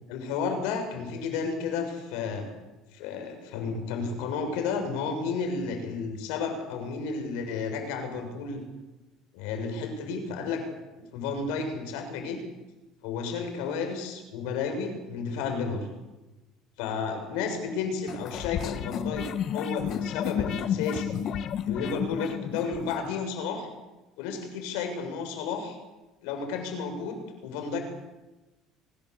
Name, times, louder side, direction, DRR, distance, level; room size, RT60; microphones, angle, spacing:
voice 1, 0.1-2.5 2.9-8.6 9.3-10.6 11.1-12.4 13.0-15.9 16.8-21.2 21.7-23.7 24.2-25.8 26.2-27.8, left 5 dB, 85° left, 6 dB, 6.9 m, -32 dB
sound 1, 18.1-23.0, left 9 dB, 50° left, 1.5 m, -31 dB
24.0 x 21.0 x 8.3 m, 1.1 s
cardioid pair, 130°, 0 cm